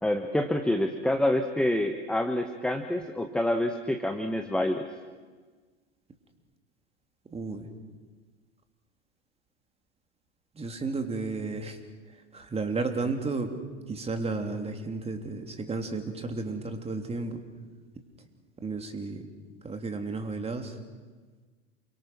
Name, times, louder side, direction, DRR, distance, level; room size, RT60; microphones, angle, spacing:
voice 1, 0.0-4.9, left 1 dB, 5° left, 6 dB, 1.3 m, -27 dB
voice 2, 7.3-7.7 10.5-11.8 12.1-13.5 13.9-17.4 18.6-19.2 19.6-20.8, right 3 dB, 20° right, 5 dB, 3.1 m, -33 dB
28.5 x 24.0 x 6.1 m, 1.4 s
figure-of-eight pair, 80°, 33 cm